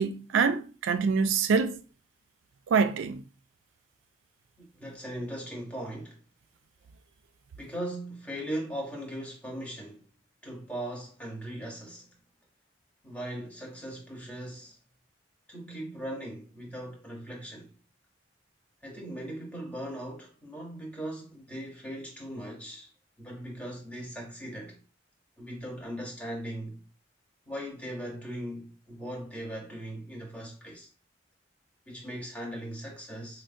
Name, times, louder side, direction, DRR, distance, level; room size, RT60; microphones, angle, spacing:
voice 1, 0.0-1.8 2.7-3.2, right 5 dB, 80° right, 0.3 m, -25 dB
voice 2, 4.6-6.2 7.6-10.1 10.4-12.1 13.0-14.8 15.5-17.7 18.8-22.9 23.2-24.8 25.4-26.8 27.5-30.9 31.9-33.4, right 1 dB, 5° left, 0.8 m, -39 dB
4.3 x 2.1 x 2.5 m
head